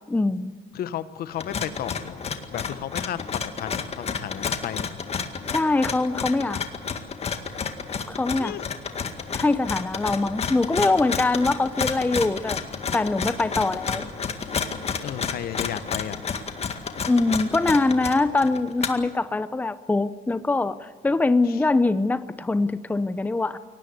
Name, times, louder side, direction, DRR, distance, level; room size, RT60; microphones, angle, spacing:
voice 1, 0.1-0.5 5.4-6.6 8.1-8.5 9.3-12.6 12.9-14.1 17.1-23.6, left 3 dB, 10° left, 13 dB, 0.7 m, -23 dB
voice 2, 0.7-2.2 2.5-5.0 8.4-8.7 15.0-16.2 21.5-21.6, left 11 dB, 65° left, 13 dB, 1.2 m, -33 dB
sound 1, 1.3-19.1, left 6 dB, 35° left, 2.0 m, -31 dB
23.0 x 18.5 x 8.1 m, 1.4 s
cardioid pair, 110°, 17 cm